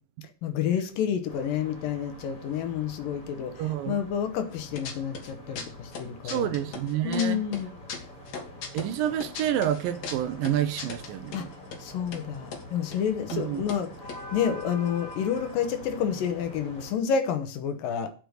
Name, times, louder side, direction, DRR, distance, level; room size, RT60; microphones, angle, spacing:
voice 1, 0.4-6.5 7.0-7.8 11.3-11.5 11.8-18.1, left 8 dB, 70° left, 2.6 m, -29 dB
sound 1, 1.3-16.9, equal, 25° left, 3.0 m, -45 dB
voice 2, 3.6-4.0 6.2-7.4 8.7-11.5 13.3-13.6, right 11 dB, 75° right, 2.3 m, -28 dB
sound 2, 4.5-5.3 5.6-7.3 7.5-11.4 11.7-11.8 12.1-12.6 12.9-13.0 13.3-13.4 13.7-15.4 15.6-15.7 15.9-16.2, left 5 dB, 55° left, 2.5 m, -38 dB
8.1 x 8.0 x 6.5 m
omnidirectional pair, 4.4 m